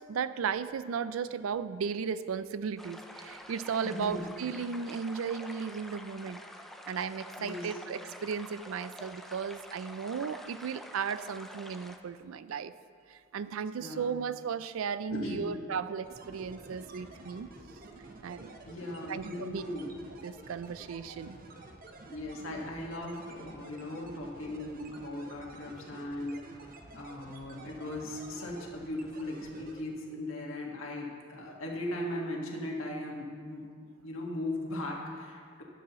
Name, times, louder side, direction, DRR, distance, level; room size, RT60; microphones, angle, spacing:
voice 1, 0.0-6.4 6.9-12.7 13.1-17.5 18.2-18.5 19.1-19.6 20.2-21.4, right 6 dB, 85° right, 14 dB, 0.4 m, -35 dB
sound 1, 2.8-12.0, equal, ahead, 0.5 m, -47 dB
voice 2, 3.8-4.2 7.4-7.8 13.8-14.1 15.1-15.5 18.7-19.9 22.1-33.6 34.0-35.6, left 1 dB, 80° left, -1 dB, 1.7 m, -38 dB
sound 2, 16.1-29.8, right 2 dB, 45° right, 0.8 m, -50 dB
sound 3, 16.3-21.8, right 3 dB, 60° left, 2.1 m, -58 dB
12.5 x 10.0 x 3.1 m, 2.1 s
head